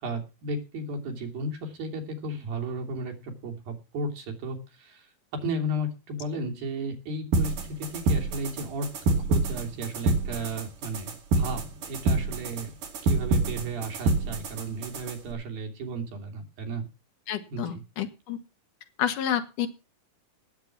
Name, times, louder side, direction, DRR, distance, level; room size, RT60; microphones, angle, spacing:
voice 1, 0.0-5.1 5.4-12.7 13.0-16.9 17.5-17.8, right 1 dB, 80° right, 3 dB, 4.6 m, -34 dB
sound 1, 7.3-15.3, right 2 dB, 65° right, 4.0 m, -27 dB
voice 2, 17.3-18.4 19.0-19.7, left 10 dB, 65° left, 7 dB, 2.9 m, -29 dB
18.5 x 7.6 x 5.9 m, 0.31 s
omnidirectional pair, 4.1 m